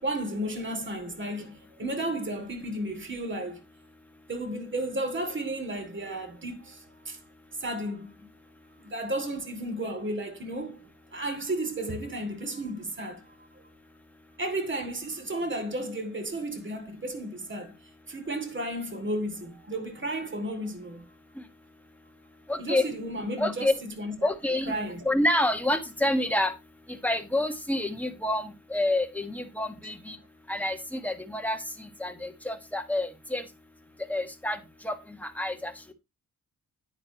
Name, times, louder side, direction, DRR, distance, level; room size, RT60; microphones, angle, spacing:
voice 1, 0.0-3.6 4.3-7.2 7.6-8.3 8.8-13.2 14.4-17.8 18.1-21.0 22.6-24.1 24.6-25.0, right 1 dB, 35° right, 2.8 m, -33 dB
voice 2, 22.5-22.8 23.4-23.7 24.2-24.7 25.0-26.5 27.0-30.2 30.5-33.4 34.1-34.6 34.8-35.9, left 1 dB, 5° left, 1.6 m, -28 dB
9.8 x 9.7 x 3.0 m
wide cardioid pair, 120°, 34 cm